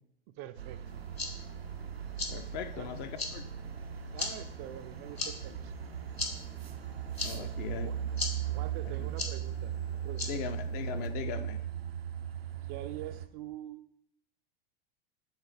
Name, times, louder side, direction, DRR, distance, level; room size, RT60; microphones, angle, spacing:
voice 1, 0.4-1.0 2.7-3.0 4.1-5.7 7.3-8.0 8.5-10.4 10.7-11.1 12.7-13.8, right 13 dB, 30° right, 12 dB, 0.4 m, -45 dB
sound 1, 0.6-13.3, right 9 dB, 80° right, 0.5 m, -38 dB
sound 2, 0.9-11.1, left 3 dB, 85° left, 1.0 m, -42 dB
voice 2, 2.3-3.4 7.2-7.9 8.8-9.1 10.3-11.6, left 8 dB, 35° left, 10 dB, 0.5 m, -39 dB
7.1 x 3.7 x 5.2 m, 0.70 s
figure-of-eight pair, 85°, 30 cm